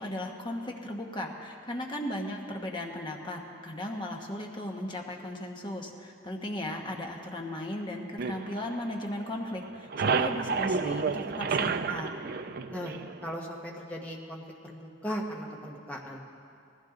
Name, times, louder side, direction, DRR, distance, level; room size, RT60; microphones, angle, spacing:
voice 1, 0.0-12.1, left 1 dB, 25° left, 1 dB, 1.2 m, -36 dB
sound 1, 8.2-9.3 9.6-13.3, right 5 dB, 50° right, 0.4 m, -30 dB
voice 2, 13.2-16.2, equal, 5° left, -2 dB, 1.4 m, -38 dB
19.0 x 15.0 x 3.9 m, 2.4 s
head